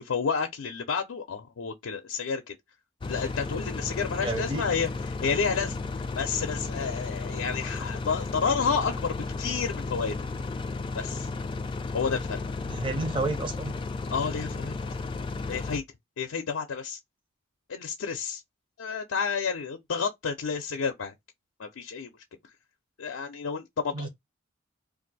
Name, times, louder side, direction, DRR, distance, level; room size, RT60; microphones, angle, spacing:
voice 1, 0.0-2.5 3.0-5.8 6.1-10.2 10.9-11.3 11.9-12.4 14.1-14.7 15.5-15.8 16.2-17.0 17.7-18.4 18.8-21.1 21.6-22.1 23.0-24.1, left 5 dB, 85° left, 0.5 m, -30 dB
sound 1, 3.0-15.8, left 3 dB, 25° left, 0.3 m, -34 dB
voice 2, 4.2-4.6 12.7-13.7 23.9-24.1, right 2 dB, 25° right, 0.6 m, -30 dB
2.6 x 2.4 x 4.0 m
head